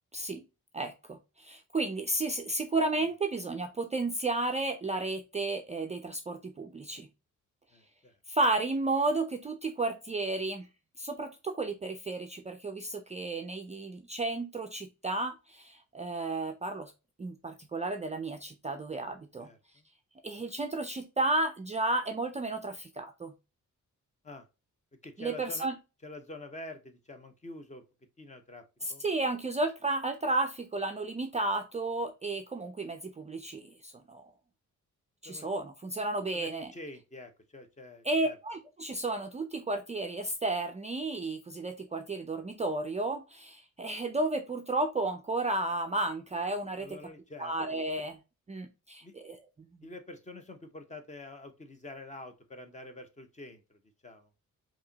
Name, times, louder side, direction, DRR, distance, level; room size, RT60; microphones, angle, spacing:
voice 1, 0.1-0.4 0.7-7.1 8.3-10.7 11.0-16.9 17.2-19.5 20.2-23.3 25.2-25.8 28.8-34.3 35.2-36.7 38.0-47.0 47.4-48.2 48.5-49.4, right 2 dB, 25° right, 5 dB, 0.4 m, -33 dB
voice 2, 7.7-8.1 19.4-19.8 24.2-24.4 25.0-25.7 26.0-27.8 28.2-29.0 35.2-35.5 36.3-38.4 46.8-47.5 49.0-49.1 49.8-54.3, left 2 dB, 25° left, 7 dB, 0.7 m, -47 dB
4.7 x 2.9 x 2.7 m, 0.28 s
wide cardioid pair, 175°, 30 cm